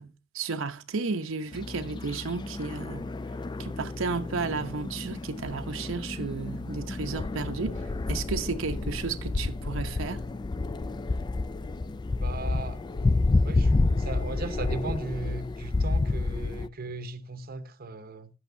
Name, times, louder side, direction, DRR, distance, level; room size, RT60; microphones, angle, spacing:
voice 1, 0.0-3.1 3.6-7.8 8.1-10.2, right 4 dB, 80° right, 0.8 m, -33 dB
sound 1, 1.5-16.7, left 3 dB, 20° left, 0.3 m, -30 dB
voice 2, 12.2-12.8 13.4-18.3, right 3 dB, 50° right, 0.8 m, -37 dB
11.5 x 8.0 x 2.7 m
head